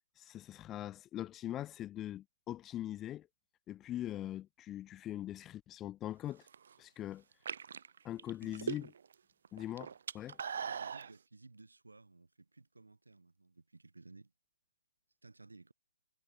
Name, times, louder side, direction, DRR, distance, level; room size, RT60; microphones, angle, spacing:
voice 1, 0.2-3.3 3.7-6.5 6.8-7.2 8.0-8.9 9.5-10.4, left 12 dB, 15° left, 0.4 m, -42 dB
sound 1, 6.3-6.7 7.3-9.1 9.4-11.1, right 7 dB, 55° right, 0.5 m, -40 dB
voice 2, 10.4-14.3 15.2-15.7, right 3 dB, 75° right, 2.3 m, -58 dB
figure-of-eight pair, 135°, 0 cm